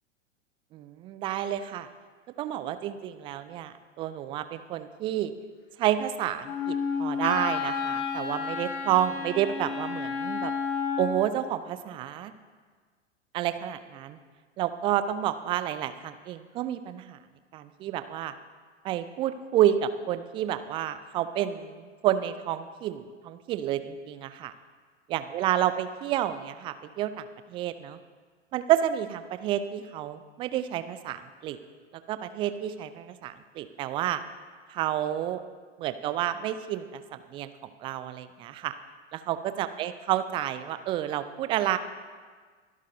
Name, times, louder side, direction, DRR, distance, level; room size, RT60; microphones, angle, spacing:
voice 1, 0.7-1.9 2.4-5.3 5.8-10.5 11.0-12.3 13.3-14.2 14.6-17.2 17.5-18.3 18.8-24.5 25.1-28.0 28.5-31.6 32.1-34.2 34.7-35.4 35.8-37.5 37.8-38.7 39.1-41.8, right 11 dB, 15° right, 12 dB, 0.3 m, -30 dB
Wind instrument woodwind instrument, 6.4-11.3, left 5 dB, 30° left, 2.3 m, -31 dB
23.5 x 12.0 x 2.7 m, 1.5 s
figure-of-eight pair, 95°, 37 cm